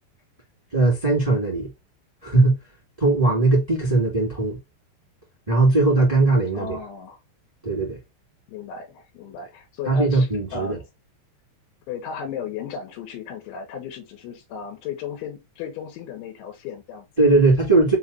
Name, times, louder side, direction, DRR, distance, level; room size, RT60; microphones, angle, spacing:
voice 1, 0.7-1.7 2.2-2.5 3.0-4.6 5.5-6.8 7.6-8.0 9.8-10.8 17.2-17.9, right 2 dB, 20° right, 0.8 m, -19 dB
voice 2, 6.5-7.2 8.5-10.9 11.9-17.1, left 7 dB, 85° left, 3.5 m, -35 dB
6.9 x 2.6 x 2.7 m
omnidirectional pair, 5.1 m